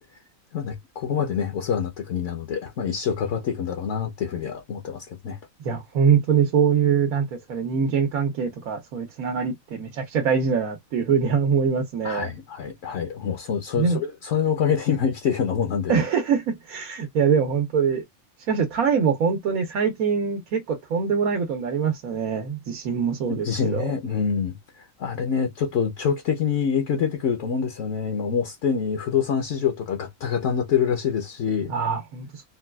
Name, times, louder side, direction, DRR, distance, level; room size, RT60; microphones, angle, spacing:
voice 1, 0.5-5.4 12.0-16.0 23.3-31.7, left 7 dB, 65° left, 1.0 m, -26 dB
voice 2, 5.6-12.3 13.8-14.0 15.9-18.0 18.5-23.9 31.7-32.5, right 6 dB, 85° right, 1.3 m, -23 dB
3.9 x 2.3 x 2.2 m
omnidirectional pair, 1.5 m